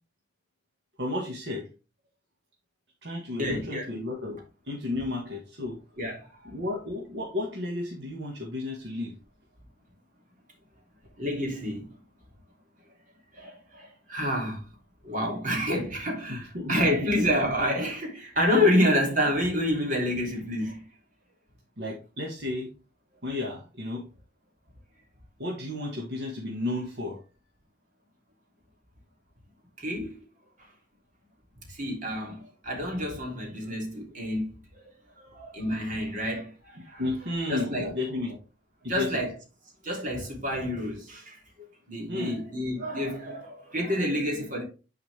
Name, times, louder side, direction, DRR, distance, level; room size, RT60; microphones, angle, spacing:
voice 1, 1.0-1.7 3.0-4.4 4.7-5.8 6.5-9.1 16.3-17.0 21.8-22.7 23.2-24.0 25.4-27.2 37.0-38.4 39.0-39.2 42.1-42.4, left 2 dB, 70° right, 1.8 m, -32 dB
voice 2, 3.4-3.8 6.0-6.5 11.2-11.9 13.3-14.6 15.0-20.8 29.8-30.2 30.6-30.7 31.7-34.5 35.2-37.0 37.5-37.9 38.9-39.3 39.8-41.4 41.9-44.6, left 1 dB, 50° right, 3.1 m, -28 dB
9.7 x 4.9 x 3.5 m
head